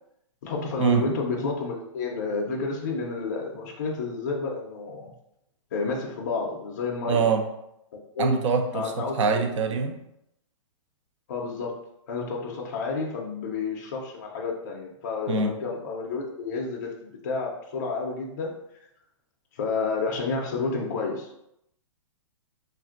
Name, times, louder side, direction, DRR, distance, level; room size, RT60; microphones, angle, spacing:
voice 1, 0.4-5.1 5.7-7.3 7.9-8.3 8.7-9.4 11.3-11.8 12.1-18.5 19.5-21.3, left 4 dB, 35° left, -1 dB, 0.4 m, -30 dB
voice 2, 7.1-7.5 8.2-10.0 15.3-15.6, right 5 dB, 65° right, 6 dB, 0.5 m, -24 dB
3.2 x 2.5 x 2.4 m, 0.79 s
hypercardioid pair, 175°, 17 cm